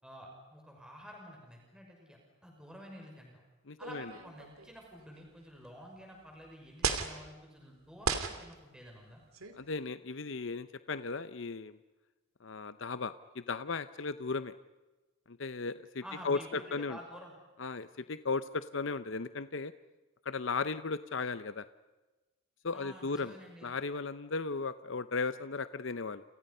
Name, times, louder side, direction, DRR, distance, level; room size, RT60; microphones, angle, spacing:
voice 1, 0.0-3.4 3.8-9.2 16.0-17.3 22.7-23.7, equal, 5° right, 0 dB, 6.0 m, -50 dB
voice 2, 3.7-4.1 9.5-11.8 12.4-14.5 15.3-17.0 17.6-19.7 20.2-21.6 22.6-23.4 23.6-26.2, left 4 dB, 60° left, 12 dB, 0.7 m, -36 dB
sound 1, 3.8-4.8 5.7-5.8 6.8-7.2 8.0-8.5 9.3-9.6, right 5 dB, 90° right, 2.7 m, -34 dB
29.0 x 29.0 x 5.6 m, 1.1 s
head